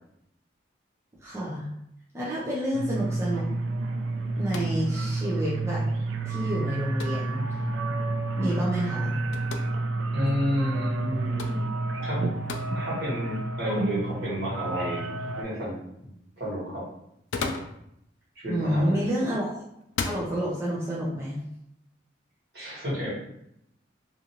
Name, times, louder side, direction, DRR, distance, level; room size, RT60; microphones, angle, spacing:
voice 1, 1.2-1.7 2.1-3.4 4.4-5.8 6.2-7.4 8.4-9.1 18.5-19.5 20.0-21.4, equal, 15° right, -8 dB, 0.4 m, -29 dB
sound 1, 2.7-15.4, right 2 dB, 90° right, 0.3 m, -30 dB
sound 2, 4.5-4.8 7.0-7.3 9.3-9.7 11.4-11.6 12.5-12.7 13.7-13.8 17.1-17.8 18.9-19.2 19.9-20.2, left 4 dB, 85° left, 0.3 m, -33 dB
voice 2, 10.1-11.7 12.0-12.2 12.7-15.1 15.4-15.8 16.4-16.8 18.3-19.1 22.5-23.1, equal, 55° right, -7 dB, 1.4 m, -30 dB
2.6 x 2.5 x 2.8 m, 0.78 s
head